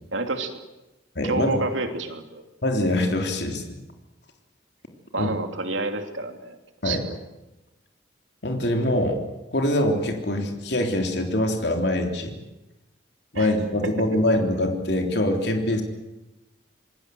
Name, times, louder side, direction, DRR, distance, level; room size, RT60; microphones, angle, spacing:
voice 1, 0.1-0.6 1.2-2.4 5.1-6.6 6.8-7.1 13.3-13.5, right 2 dB, 85° right, 6 dB, 3.0 m, -28 dB
voice 2, 1.2-1.6 2.6-3.8 5.2-5.3 6.8-7.0 8.4-9.2 9.5-12.4 13.3-15.8, left 1 dB, 60° left, 3 dB, 3.4 m, -24 dB
27.0 x 20.5 x 7.9 m, 1.0 s
head